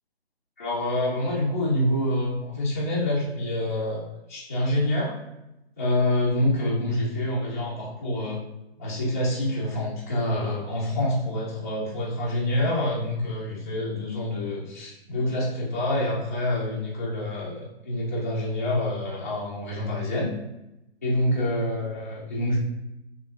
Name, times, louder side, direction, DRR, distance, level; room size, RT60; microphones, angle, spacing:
voice 1, 0.6-5.2 5.8-8.4 8.8-20.3 21.0-22.6, left 1 dB, 15° left, -9 dB, 0.3 m, -27 dB
5.2 x 2.5 x 2.4 m, 0.92 s
figure-of-eight pair, 140°, 32 cm